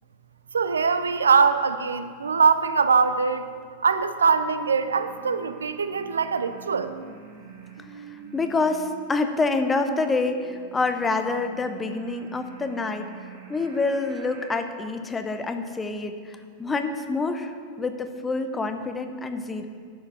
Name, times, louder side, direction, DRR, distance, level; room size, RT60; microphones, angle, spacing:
voice 1, 0.5-3.5 3.8-6.9, right 5 dB, 70° right, 11 dB, 0.5 m, -22 dB
sound 1, 4.3-14.5, right 4 dB, 55° right, 1.8 m, -45 dB
voice 2, 7.9-13.2 13.5-19.7, left 3 dB, 15° left, 8 dB, 0.8 m, -27 dB
11.0 x 6.7 x 6.1 m, 2.2 s
figure-of-eight pair, 90°, 0 cm